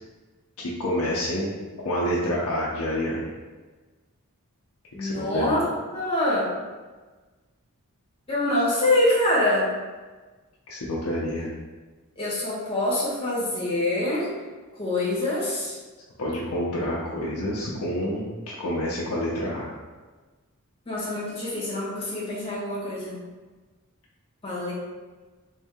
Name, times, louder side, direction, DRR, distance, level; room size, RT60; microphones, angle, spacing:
voice 1, 0.6-1.5 1.8-3.3 5.0-5.6 10.7-11.5 16.2-19.7, equal, 75° left, -6 dB, 0.6 m, -28 dB
voice 2, 4.9-5.6 5.9-6.5 8.3-9.7 12.2-14.3 14.8-15.7 20.9-23.2 24.4-24.7, left 1 dB, 25° left, -8 dB, 1.3 m, -25 dB
3.6 x 2.7 x 3.5 m, 1.3 s
head